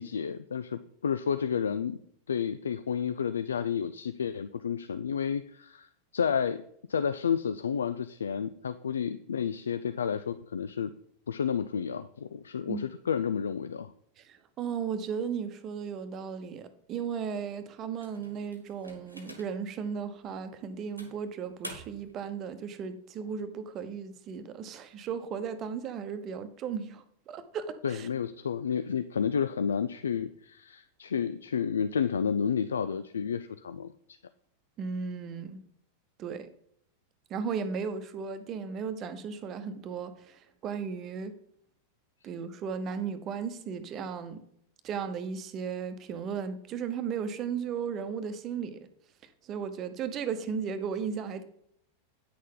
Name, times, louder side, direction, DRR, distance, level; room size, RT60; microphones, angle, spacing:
voice 1, 0.0-2.0 2.3-6.6 6.9-10.9 11.3-13.9 27.8-34.2, left 7 dB, 70° left, 12 dB, 0.3 m, -31 dB
voice 2, 14.2-28.1 34.8-35.6 36.2-36.5 37.3-41.3 42.2-44.4 44.8-48.8 49.5-51.4, right 6 dB, 30° right, 10 dB, 0.9 m, -35 dB
sound 1, 18.0-19.7 20.3-20.4 21.0-22.2, equal, 90° right, 1.4 m, -47 dB
9.4 x 6.4 x 3.8 m, 0.69 s
figure-of-eight pair, 90°, 0 cm